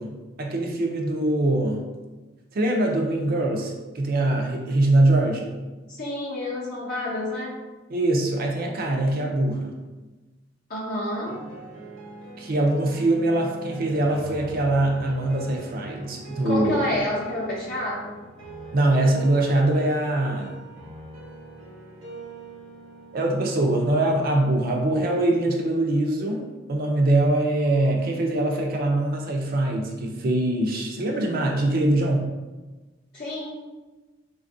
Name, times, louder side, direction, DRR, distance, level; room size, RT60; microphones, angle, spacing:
voice 1, 0.0-1.8 2.5-5.5 7.9-9.8 12.4-16.9 18.7-20.6 23.1-26.4 26.7-32.3, right 1 dB, 50° right, 1 dB, 0.4 m, -23 dB
voice 2, 5.9-7.6 10.7-11.4 16.4-18.2 33.1-33.7, left 1 dB, 50° left, -7 dB, 0.6 m, -29 dB
sound 1, 11.2-24.6, right 3 dB, 75° right, 0.9 m, -42 dB
3.4 x 2.3 x 2.5 m, 1.2 s
head